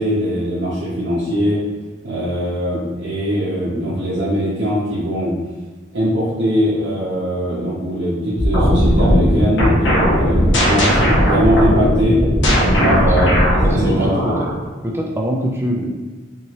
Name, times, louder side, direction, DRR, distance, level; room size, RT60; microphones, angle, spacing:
voice 1, 0.0-1.6 2.0-5.3 5.9-12.2 12.6-14.3, equal, 65° right, -9 dB, 0.7 m, -21 dB
sound 1, 8.4-14.6, equal, 65° left, 0.7 m, -16 dB
voice 2, 12.8-13.2 13.6-14.5 14.8-15.9, equal, 10° right, -1 dB, 0.3 m, -23 dB
2.9 x 2.7 x 2.8 m, 1.3 s
head